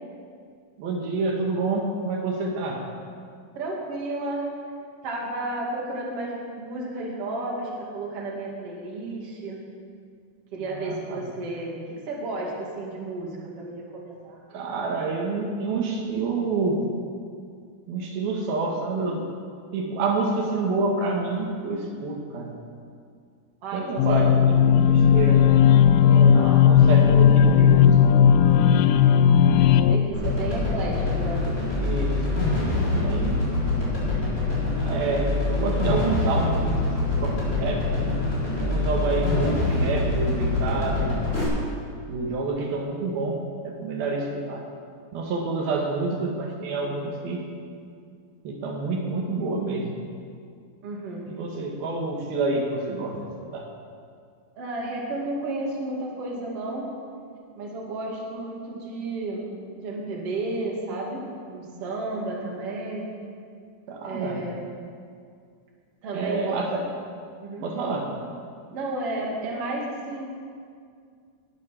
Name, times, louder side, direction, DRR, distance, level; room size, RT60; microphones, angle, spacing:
voice 1, 0.8-2.9 10.6-11.2 14.5-16.8 17.9-19.3 19.7-22.5 23.7-25.5 26.0-26.4 26.6-28.1 31.8-33.5 34.7-38.3 38.6-41.2 42.1-43.4 43.6-44.6 45.1-47.4 48.4-50.0 51.3-53.2 53.5-53.7 63.9-64.4 66.1-66.8 67.6-68.1, right 3 dB, 80° right, 0 dB, 3.3 m, -28 dB
voice 2, 3.5-4.5 5.0-9.6 10.5-14.5 23.6-24.2 26.3-26.6 29.9-31.5 39.0-39.1 50.8-51.3 54.6-56.9 57.5-61.2 61.5-63.1 64.0-64.6 66.0-66.6 67.4-67.7 68.7-70.3, right 2 dB, 45° right, -3 dB, 3.0 m, -32 dB
sound 1, 24.0-30.0, left 8 dB, 85° left, 1.8 m, -16 dB
sound 2, 30.1-41.4, left 2 dB, 20° left, 4.2 m, -25 dB
19.0 x 9.1 x 5.9 m, 2.2 s
omnidirectional pair, 4.3 m